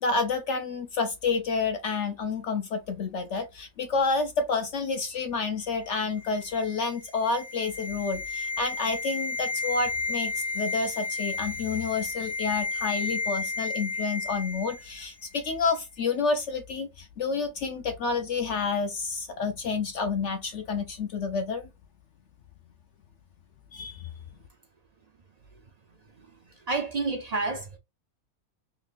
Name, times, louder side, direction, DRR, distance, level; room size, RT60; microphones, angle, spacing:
voice 1, 0.0-21.6 23.7-24.1, left 4 dB, 65° left, 0.8 m, -29 dB
sound 1, 5.8-15.1 15.4-15.5, left 3 dB, 45° left, 1.3 m, -33 dB
voice 2, 26.2-27.8, right 3 dB, 55° right, 0.4 m, -30 dB
3.8 x 3.2 x 2.4 m
omnidirectional pair, 1.5 m